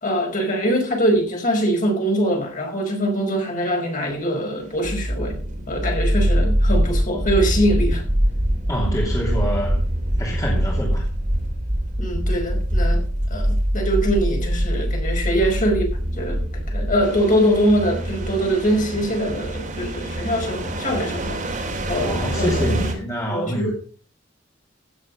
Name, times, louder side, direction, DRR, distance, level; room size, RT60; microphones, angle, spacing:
voice 1, 0.0-5.4 5.7-8.0 12.0-13.0 13.3-15.9 16.2-16.4 16.7-21.4 21.9-22.8 23.3-23.7, equal, 45° left, 5.2 m, -23 dB
sound 1, 4.7-22.9, equal, 40° right, 3.3 m, -23 dB
voice 2, 8.7-9.8 10.2-11.1 22.0-23.7, equal, 20° left, 2.9 m, -26 dB
16.5 x 7.7 x 5.3 m
head